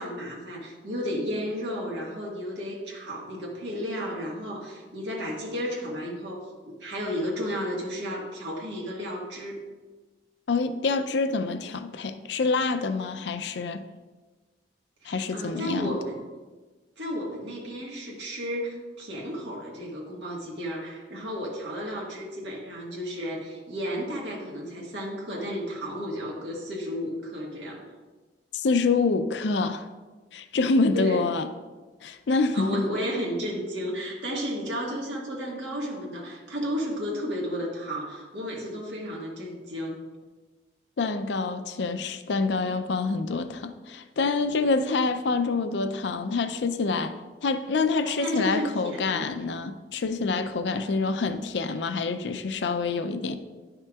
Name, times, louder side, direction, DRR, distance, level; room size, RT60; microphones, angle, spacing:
voice 1, 0.0-6.5 6.8-9.6 15.0-16.2 17.0-27.8 30.9-31.3 32.5-40.0 48.0-49.2 50.7-50.8, equal, 90° right, 1.5 m, -33 dB
voice 2, 10.5-13.8 15.0-16.0 28.5-29.9 30.3-31.5 32.0-32.9 41.0-47.1 47.4-53.4, left 3 dB, 75° left, 0.5 m, -26 dB
10.5 x 5.8 x 2.3 m
head